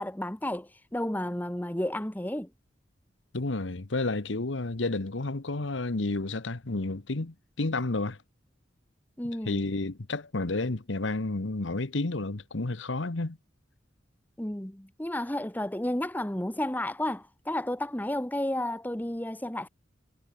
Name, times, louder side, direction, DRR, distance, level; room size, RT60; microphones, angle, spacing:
voice 1, 0.0-2.5 9.2-9.7 14.4-19.7, left 1 dB, 10° left, 1.0 m, -32 dB
voice 2, 3.3-8.2 9.4-13.4, left 2 dB, 80° left, 1.2 m, -31 dB
head